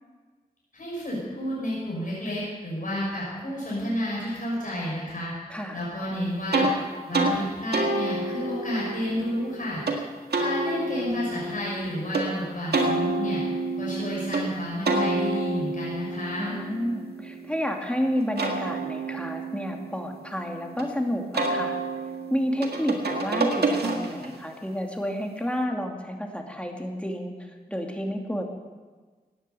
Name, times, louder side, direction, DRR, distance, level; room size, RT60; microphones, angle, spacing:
voice 1, 0.7-5.3 5.7-6.7 7.1-9.8 10.4-13.4 13.8-16.6, equal, 55° left, -6 dB, 6.0 m, -30 dB
voice 2, 5.5-5.8 16.4-21.8 22.3-28.4, equal, 5° left, 2 dB, 2.5 m, -30 dB
sound 1, 6.5-6.7 7.1-7.4 7.7-10.0 10.3-12.2 12.7-14.4 14.9-17.7 18.2-20.8 21.3-24.4, right 2 dB, 85° right, 1.8 m, -28 dB
16.0 x 10.0 x 6.8 m, 1.4 s
cardioid pair, 55°, 16 cm